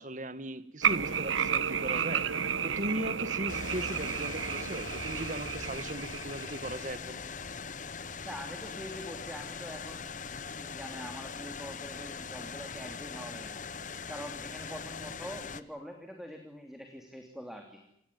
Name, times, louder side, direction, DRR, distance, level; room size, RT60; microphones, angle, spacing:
voice 1, 0.0-2.3 2.6-7.2, right 1 dB, 40° right, 13 dB, 1.7 m, -38 dB
sound 1, 0.8-6.8, right 7 dB, 90° right, 1.2 m, -32 dB
sound 2, 3.5-15.6, left 5 dB, 40° left, 0.9 m, -41 dB
voice 2, 8.2-10.1 10.6-13.6 14.1-17.8, equal, ahead, 4 dB, 3.0 m, -44 dB
27.0 x 19.0 x 9.5 m, 0.79 s
head